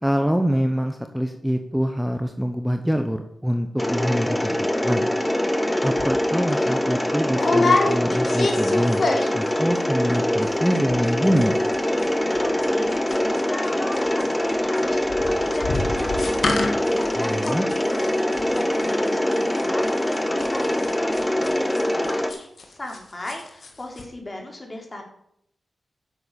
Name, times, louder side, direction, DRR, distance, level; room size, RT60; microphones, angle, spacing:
voice 1, 0.0-5.0 5.8-11.5 17.1-17.7, equal, 5° right, 6 dB, 1.2 m, -25 dB
Mechanisms, 3.8-22.3, left 1 dB, 20° left, 1.7 m, -23 dB
sound 1, 6.0-6.1 6.5-6.7 7.3-9.5 9.7-10.2 10.4-10.5 10.7-11.1 11.4-13.7 13.9-23.0 23.3-23.7 24.0-24.1, left 3 dB, 65° left, 2.4 m, -27 dB
voice 2, 12.4-12.9 13.5-25.0, left 1 dB, 35° left, 2 dB, 3.7 m, -37 dB
10.0 x 7.7 x 7.2 m, 0.72 s
cardioid pair, 50°, 0 cm